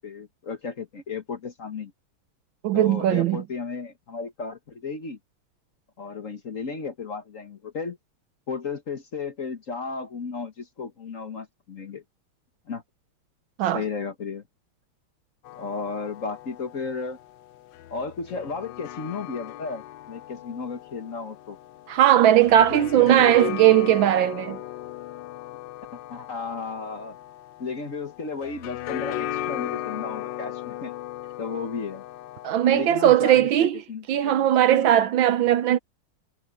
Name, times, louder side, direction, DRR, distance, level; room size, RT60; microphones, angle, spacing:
voice 1, 0.0-1.9 2.7-5.2 6.0-8.0 8.5-12.0 12.7-12.8 13.7-14.4 15.5-17.2 17.9-21.6 22.6-23.6 26.1-27.2 27.6-30.9 31.4-32.0 32.7-34.5, left 4 dB, 40° left, 1.5 m, -34 dB
voice 2, 2.6-3.4 13.6-13.8 21.9-24.6 32.4-33.8 34.1-35.8, right 12 dB, 70° right, 1.4 m, -19 dB
sound 1, 15.4-32.9, left 13 dB, 70° left, 1.2 m, -37 dB
omnidirectional pair, 2.4 m